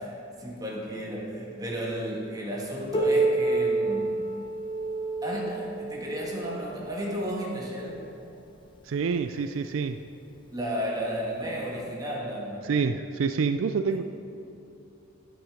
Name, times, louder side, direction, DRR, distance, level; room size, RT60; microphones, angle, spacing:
voice 1, 0.0-4.2 5.2-8.1 10.5-12.7 13.9-14.0, equal, 20° right, -3 dB, 1.9 m, -33 dB
Piano, 2.9-8.2 9.1-9.2 9.7-9.8 10.6-10.7 11.7-11.8, right 3 dB, 25° left, 0.9 m, -29 dB
voice 2, 8.9-10.0 12.6-14.0, right 5 dB, 70° right, 9 dB, 0.4 m, -27 dB
10.0 x 7.9 x 5.0 m, 2.9 s
head